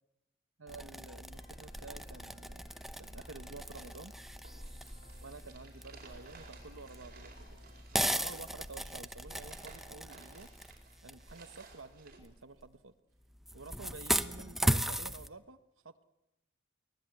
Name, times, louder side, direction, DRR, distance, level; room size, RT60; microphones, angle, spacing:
voice 1, 0.6-2.6 3.0-4.1 5.2-7.3 7.9-10.5 11.0-12.9 13.5-16.0, right 3 dB, 75° right, 9 dB, 1.2 m, -50 dB
sound 1, 0.7-12.7 13.3-15.3, equal, ahead, 0.8 m, -38 dB
sound 2, 1.3-7.8, left 1 dB, 90° left, 5.6 m, -62 dB
sound 3, 3.5-12.2, right 4 dB, 50° right, 4.6 m, -57 dB
24.0 x 18.5 x 9.3 m, 0.90 s
head